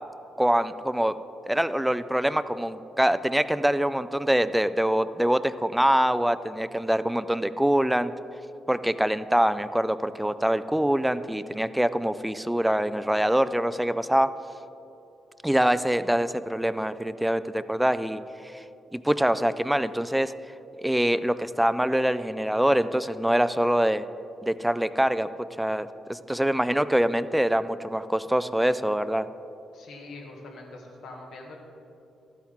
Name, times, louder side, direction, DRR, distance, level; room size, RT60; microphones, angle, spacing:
voice 1, 0.4-1.1 1.5-8.1 8.7-14.3 15.4-18.6 18.9-20.3 20.8-24.1 24.4-25.3 25.6-29.3, right 1 dB, 5° right, 14 dB, 0.4 m, -24 dB
voice 2, 29.7-31.6, left 2 dB, 80° left, 0 dB, 1.6 m, -43 dB
12.5 x 9.2 x 3.7 m, 2.8 s
cardioid pair, 90°, 0 cm